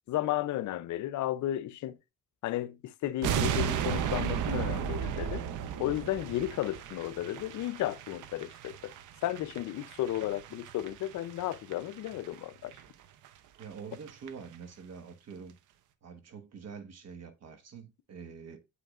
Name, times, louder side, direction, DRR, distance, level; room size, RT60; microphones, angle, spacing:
voice 1, 0.1-2.0 2.4-5.5 5.8-8.9 9.2-12.8, left 13 dB, 75° left, 0.6 m, -33 dB
sound 1, 3.2-12.4 12.7-12.8 13.2-13.3 13.6-13.7 13.9-14.3 14.5-14.6, right 8 dB, 80° right, 0.7 m, -35 dB
voice 2, 13.6-15.6 16.0-18.6, right 6 dB, 55° right, 1.4 m, -46 dB
8.1 x 5.1 x 2.4 m
cardioid pair, 90°, 30 cm